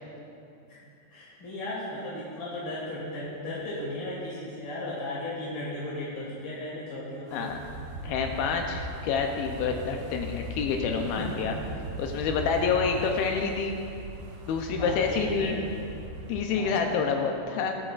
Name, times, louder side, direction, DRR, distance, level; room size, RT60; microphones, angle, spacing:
voice 1, 1.1-7.4 8.3-8.4 11.0-11.3 12.9-13.1 14.7-15.6 16.5-16.8, left 1 dB, 45° left, -7 dB, 1.8 m, -36 dB
Wind, 7.3-16.4, right 1 dB, 80° right, 3.1 m, -39 dB
voice 2, 8.0-11.6 12.0-13.8 14.5-15.6 16.3-17.7, left 5 dB, 80° left, 3 dB, 2.4 m, -28 dB
20.5 x 8.3 x 2.4 m, 2.6 s
omnidirectional pair, 4.6 m